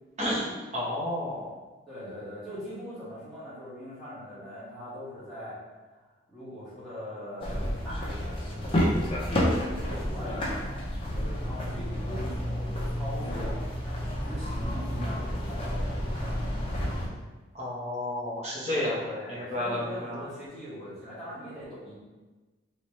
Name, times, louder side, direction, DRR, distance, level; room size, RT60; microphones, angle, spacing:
voice 1, 0.2-1.5 17.5-19.0 19.3-20.2, left 1 dB, 35° right, -6 dB, 0.9 m, -31 dB
voice 2, 1.9-5.6 5.9-8.9 9.4-10.8 11.4-13.6 14.2-16.9 18.7-21.9, equal, ahead, -13 dB, 1.5 m, -41 dB
sound 1, 7.4-17.1, equal, 30° left, 0.6 m, -30 dB
3.1 x 3.0 x 3.1 m, 1.2 s
head